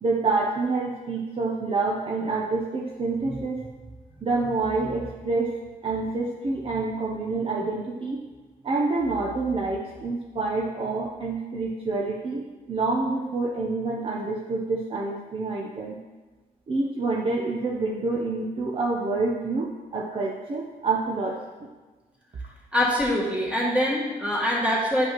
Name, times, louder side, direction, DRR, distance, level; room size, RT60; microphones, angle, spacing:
voice 1, 0.0-3.7 4.2-5.6 5.8-8.2 8.6-16.0 16.7-21.7, right 3 dB, 35° right, -1 dB, 0.7 m, -27 dB
voice 2, 22.7-25.0, left 1 dB, 10° right, -5 dB, 2.2 m, -24 dB
10.5 x 5.2 x 3.0 m, 1.3 s
cardioid pair, 105°, 15 cm